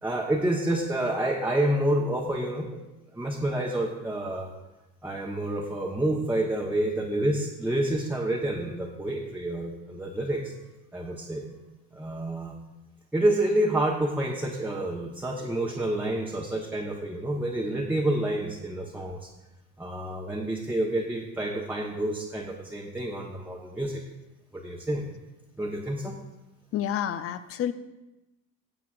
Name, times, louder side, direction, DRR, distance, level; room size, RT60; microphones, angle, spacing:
voice 1, 0.0-2.8 3.1-4.5 5.0-10.5 10.9-11.4 11.9-12.6 13.1-19.3 19.8-24.0 24.5-25.0 25.6-26.2, right 1 dB, 5° right, -2 dB, 1.1 m, -28 dB
voice 2, 26.7-27.7, left 10 dB, 30° left, 14 dB, 0.5 m, -29 dB
16.5 x 8.2 x 2.5 m, 0.99 s
figure-of-eight pair, 60°, 49 cm